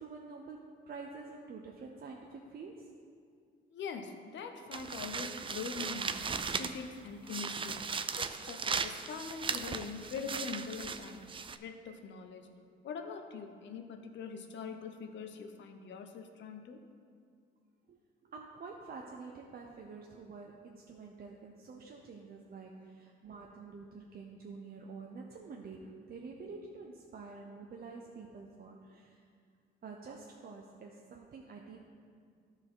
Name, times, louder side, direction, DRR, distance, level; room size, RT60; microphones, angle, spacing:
voice 1, 0.0-2.9 17.9-18.0 18.2-29.2 29.8-31.9, right 4 dB, 50° right, 0 dB, 0.7 m, -48 dB
voice 2, 3.7-6.3 6.6-11.2 11.6-12.5 12.8-16.8 22.8-22.9, left 5 dB, 70° left, 6 dB, 0.8 m, -43 dB
sound 1, 4.7-6.9 7.3-11.6, right 5 dB, 25° right, 0.4 m, -37 dB
13.5 x 4.5 x 3.8 m, 2.2 s
cardioid pair, 90°, 20 cm